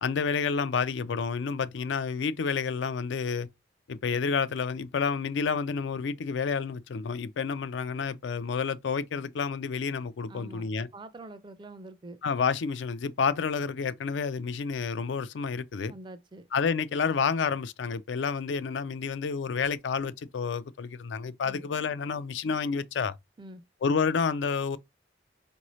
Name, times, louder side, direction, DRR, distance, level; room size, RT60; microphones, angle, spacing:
voice 1, 0.0-3.5 3.9-10.9 12.2-15.9 16.5-23.2 23.8-24.8, left 5 dB, 80° left, 0.4 m, -29 dB
voice 2, 10.3-12.2 15.9-16.5 21.4-21.7 23.4-23.6, right 2 dB, 25° right, 0.4 m, -45 dB
4.7 x 2.6 x 3.0 m
head